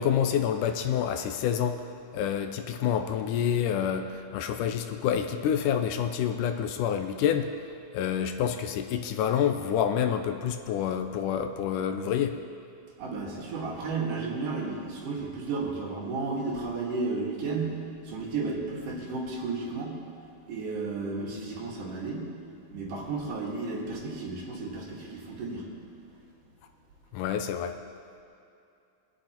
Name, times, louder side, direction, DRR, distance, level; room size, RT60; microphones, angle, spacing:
voice 1, 0.0-1.8 2.1-7.5 7.9-12.4 27.1-27.8, left 9 dB, 80° left, 7 dB, 2.1 m, -28 dB
voice 2, 13.0-17.7 18.1-20.0 20.5-22.3 22.7-25.7, right 3 dB, 75° right, -3 dB, 3.4 m, -33 dB
22.5 x 7.8 x 4.4 m, 2.5 s
omnidirectional pair, 3.8 m